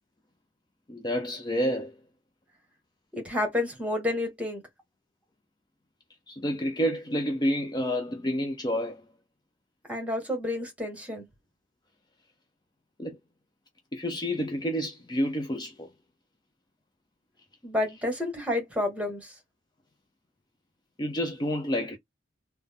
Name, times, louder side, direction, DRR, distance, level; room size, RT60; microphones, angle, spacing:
voice 1, 0.9-2.0 6.3-9.0 13.0-13.2 13.9-15.9 21.0-22.0, equal, 20° left, 0.5 m, -29 dB
voice 2, 3.1-4.6 9.9-11.2 17.6-19.3, left 1 dB, 5° right, 1.5 m, -30 dB
3.8 x 2.2 x 3.5 m
head